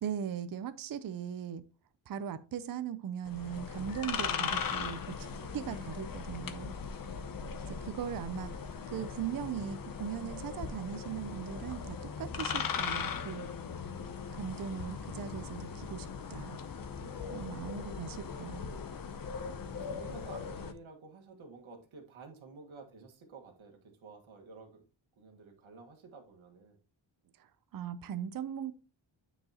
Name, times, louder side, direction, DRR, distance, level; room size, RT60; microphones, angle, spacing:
voice 1, 0.0-1.6 2.1-5.3 5.5-6.8 7.7-13.5 14.3-16.6 17.3-18.7 27.7-28.7, right 8 dB, 50° right, 0.5 m, -39 dB
sound 1, 3.3-20.7, left 6 dB, 45° left, 0.7 m, -39 dB
voice 2, 17.0-17.6 19.2-24.8 25.2-26.8, right 4 dB, 85° right, 1.7 m, -52 dB
8.8 x 4.8 x 2.8 m
wide cardioid pair, 150°, 47 cm